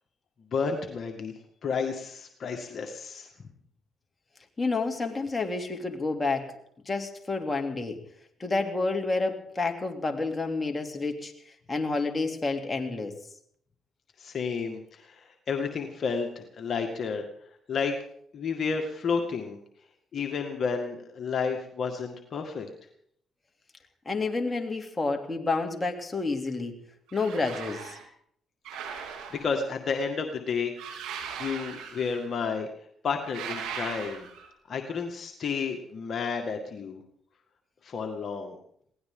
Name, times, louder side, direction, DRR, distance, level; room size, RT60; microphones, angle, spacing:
voice 1, 0.5-1.3 1.6-3.3 14.2-17.2 17.7-17.9 18.3-19.6 20.1-22.7 28.8-29.0 29.3-31.0 31.4-32.7 33.0-34.3 34.7-37.0 37.8-38.6, left 5 dB, 55° left, 3 dB, 1.9 m, -31 dB
voice 2, 4.6-6.5 6.9-8.0 8.4-11.3 11.7-13.2 24.0-26.7 27.1-28.0, left 3 dB, 25° left, 3 dB, 2.9 m, -29 dB
sound 1, 27.1-28.0 28.6-29.7 30.8-32.4 33.2-34.5, right 7 dB, 85° right, 2.9 m, -39 dB
22.0 x 17.0 x 3.8 m, 0.66 s
supercardioid pair, 60°, 0 cm